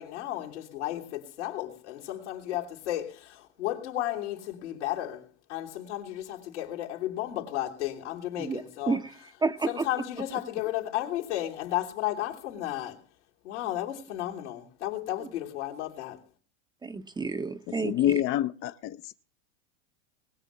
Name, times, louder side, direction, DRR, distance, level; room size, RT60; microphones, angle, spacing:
voice 1, 0.0-9.0 9.7-13.0 13.4-16.2, left 13 dB, 85° left, 3.2 m, -33 dB
voice 2, 8.4-9.1 9.4-9.9 16.8-18.2, right 4 dB, 10° right, 0.7 m, -31 dB
voice 3, 17.8-19.1, left 12 dB, 40° left, 0.6 m, -27 dB
20.5 x 6.9 x 7.3 m
hypercardioid pair, 110°, 34 cm